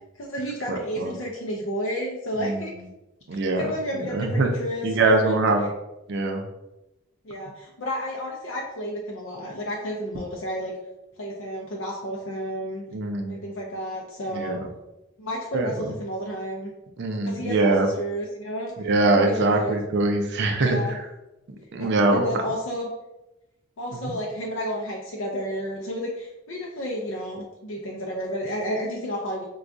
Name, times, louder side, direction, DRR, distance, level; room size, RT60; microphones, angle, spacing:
voice 1, 0.2-2.7 3.4-4.9 5.2-5.4 7.2-10.7 11.2-12.8 13.3-14.6 15.2-16.7 17.2-18.7 19.3-19.7 20.6-21.0 21.8-22.9 23.8-29.4, equal, 60° left, -2 dB, 0.5 m, -31 dB
voice 2, 0.7-1.2 2.4-2.6 3.3-3.6 3.9-4.5 4.8-5.7 6.1-6.4 12.9-13.3 14.3-14.7 15.5-15.7 17.0-17.9 18.8-21.1 21.7-22.3 24.0-24.1, right 2 dB, 55° right, 4 dB, 0.4 m, -23 dB
4.6 x 2.2 x 2.5 m, 0.94 s
head